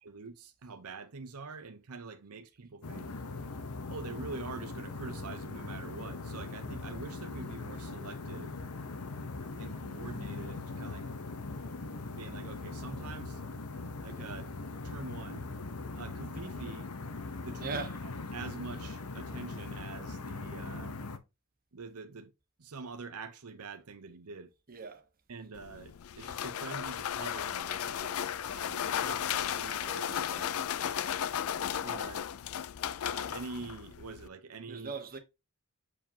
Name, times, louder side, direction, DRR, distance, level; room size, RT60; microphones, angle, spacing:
voice 1, 0.0-3.1 3.9-8.6 9.6-11.1 12.1-13.4 14.0-14.5 14.8-15.5 15.9-16.9 17.4-21.0 21.7-22.3 22.6-24.5 25.3-30.6 30.8-30.9 31.8-32.3 33.0-35.0, right 4 dB, 80° right, 0.7 m, -45 dB
sound 1, 2.8-21.2, left 3 dB, 85° left, 0.9 m, -40 dB
voice 2, 17.6-18.0 24.7-25.0 34.7-35.2, right 4 dB, 40° right, 1.2 m, -39 dB
sound 2, 25.5-34.3, left 9 dB, 65° left, 0.4 m, -35 dB
7.2 x 4.9 x 2.8 m
head